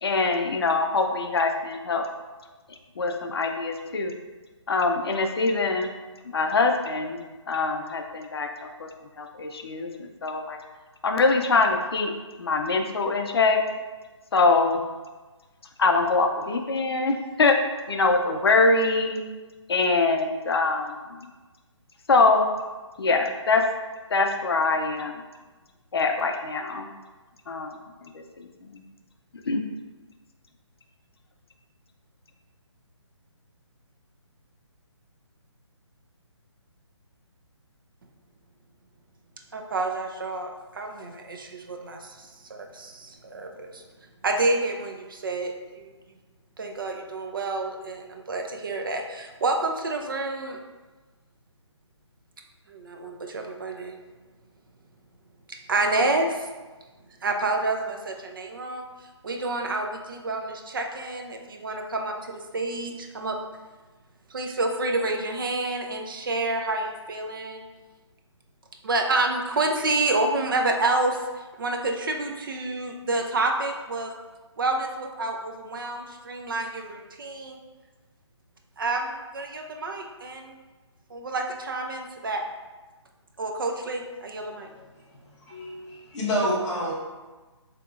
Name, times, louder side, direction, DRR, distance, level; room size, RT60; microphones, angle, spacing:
voice 1, 0.0-2.0 3.0-4.1 4.7-5.9 6.3-7.2 7.5-8.9 9.2-10.6 11.0-12.1 12.4-13.6 14.3-14.8 15.8-17.5 17.9-19.2 19.7-20.9 22.1-22.5 23.0-23.6 24.1-25.1 25.9-26.9 27.5-27.7 28.7-28.8 29.5-29.6, left 3 dB, 55° left, 4 dB, 0.5 m, -23 dB
voice 2, 39.5-43.8 44.2-45.9 46.6-50.6 52.7-54.0 55.7-56.5 57.2-58.9 59.2-63.4 64.3-67.6 68.8-74.1 74.6-77.6 78.8-80.5 81.1-82.4 83.4-84.7, right 2 dB, 45° right, 3 dB, 0.5 m, -28 dB
voice 3, 84.6-86.9, equal, 5° left, -8 dB, 0.5 m, -29 dB
7.6 x 2.9 x 2.4 m, 1.3 s
hypercardioid pair, 170°, 16 cm